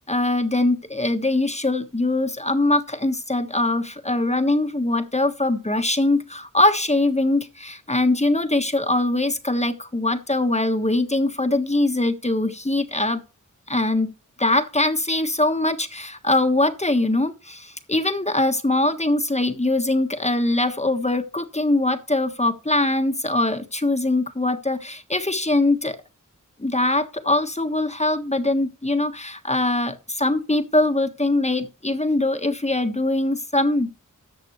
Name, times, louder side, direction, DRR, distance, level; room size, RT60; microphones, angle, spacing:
voice 1, 0.1-13.2 13.7-14.1 14.4-26.0 26.6-33.9, left 2 dB, 20° left, 1.4 m, -22 dB
14.0 x 7.7 x 3.1 m
wide cardioid pair, 60°, 32 cm